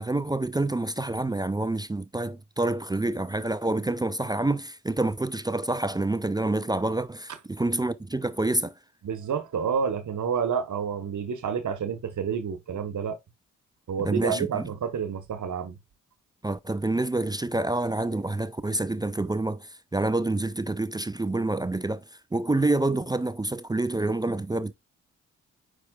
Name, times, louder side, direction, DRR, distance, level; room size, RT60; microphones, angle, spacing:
voice 1, 0.0-8.7 14.0-14.7 16.4-22.0 22.3-24.7, right 2 dB, 10° right, 0.5 m, -27 dB
voice 2, 9.0-13.2 13.9-15.8, right 7 dB, 60° right, 1.3 m, -29 dB
8.7 x 4.9 x 2.4 m
hypercardioid pair, 45°, 34 cm